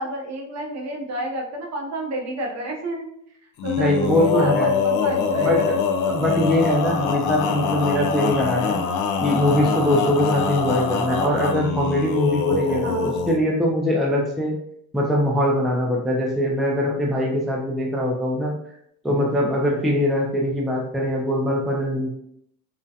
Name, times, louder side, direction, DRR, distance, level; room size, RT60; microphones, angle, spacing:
voice 1, 0.0-3.1 3.6-5.7 12.8-13.1, right 1 dB, 50° right, 1 dB, 0.6 m, -30 dB
Male singing, 3.6-13.4, left 5 dB, 60° left, 0.4 m, -24 dB
voice 2, 3.8-4.7 5.4-5.6 6.1-8.8 9.2-14.5 14.9-18.5 19.0-22.1, left 1 dB, ahead, -2 dB, 0.3 m, -22 dB
2.4 x 2.1 x 2.6 m, 0.72 s
cardioid pair, 110°, 34 cm